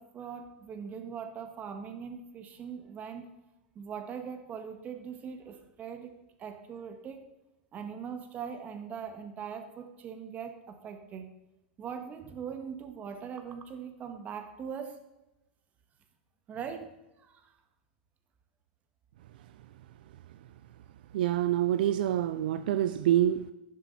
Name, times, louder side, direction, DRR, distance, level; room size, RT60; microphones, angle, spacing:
voice 1, 0.0-3.3 3.8-6.1 6.4-7.3 7.7-11.3 11.8-15.0 16.5-16.9 17.2-17.5, right 7 dB, 30° right, 1.8 m, -41 dB
voice 2, 21.1-23.5, right 11 dB, 75° right, 0.5 m, -26 dB
11.5 x 10.5 x 4.2 m
hypercardioid pair, 120°, 5 cm